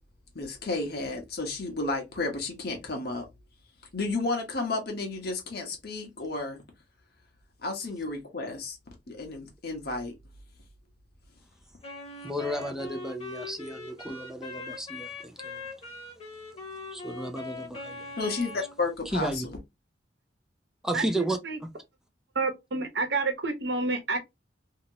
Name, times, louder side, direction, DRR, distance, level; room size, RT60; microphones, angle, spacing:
voice 1, 0.3-3.3 3.9-6.6 7.6-8.8 9.1-10.1 18.2-19.5, left 3 dB, 60° left, 1.1 m, -32 dB
Wind instrument woodwind instrument, 11.8-18.8, left 3 dB, 35° left, 1.1 m, -41 dB
voice 2, 12.2-15.6 16.9-18.1 19.1-19.4 20.8-21.7, right 1 dB, 5° right, 0.4 m, -33 dB
voice 3, 20.9-21.6 22.3-24.2, right 3 dB, 70° right, 1.0 m, -29 dB
2.9 x 2.8 x 2.8 m
head